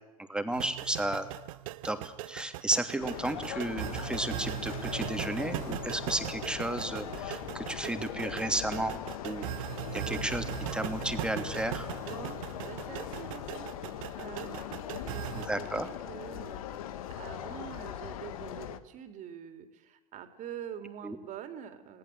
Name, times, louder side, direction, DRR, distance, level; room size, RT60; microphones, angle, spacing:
voice 1, 0.3-1.3 1.8-9.0 9.2-9.5 9.9-10.4 10.7-11.9 15.3-15.9 21.0-21.2, right 1 dB, 5° right, 6 dB, 2.9 m, -33 dB
sound 1, 0.5-15.5, right 16 dB, 65° right, 1.2 m, -39 dB
sound 2, 3.0-18.8, left 10 dB, 70° left, 1.7 m, -40 dB
voice 2, 12.1-22.0, right 9 dB, 40° right, 7 dB, 3.4 m, -46 dB
28.5 x 19.0 x 8.0 m, 1.0 s
hypercardioid pair, 85°, 19 cm